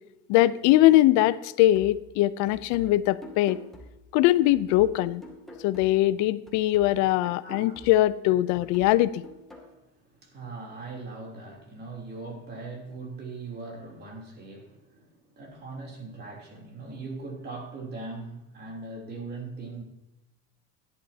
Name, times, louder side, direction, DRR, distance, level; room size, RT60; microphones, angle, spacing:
voice 1, 0.3-3.6 4.1-5.2 5.6-9.2, left 15 dB, 65° left, 16 dB, 0.7 m, -21 dB
sound 1, 1.7-6.2 6.5-9.7, left 1 dB, ahead, 2.4 m, -48 dB
voice 2, 7.2-7.8 9.9-19.8, right 3 dB, 30° right, 0 dB, 3.4 m, -40 dB
16.0 x 11.0 x 2.9 m, 0.94 s
cardioid pair, 140°, 31 cm